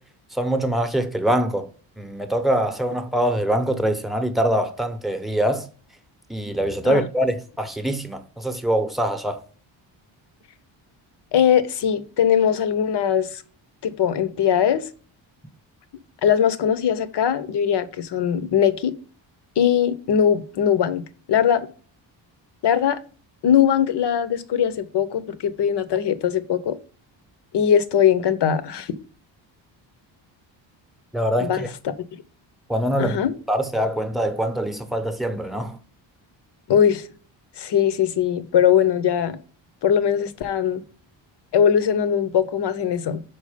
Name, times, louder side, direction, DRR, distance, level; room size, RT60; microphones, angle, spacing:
voice 1, 0.3-1.7 2.0-5.7 6.3-9.4 31.1-31.7 32.7-33.2 33.5-35.8, right 1 dB, ahead, 0.9 m, -23 dB
voice 2, 11.3-13.4 13.8-14.8 16.2-19.0 19.6-21.7 22.6-23.0 23.4-26.8 27.5-29.0 31.4-31.7 33.0-33.3 36.7-37.1 37.6-39.4 39.8-40.8 41.5-43.2, left 8 dB, 60° left, 0.9 m, -20 dB
5.5 x 4.6 x 5.0 m
cardioid pair, 110°, 47 cm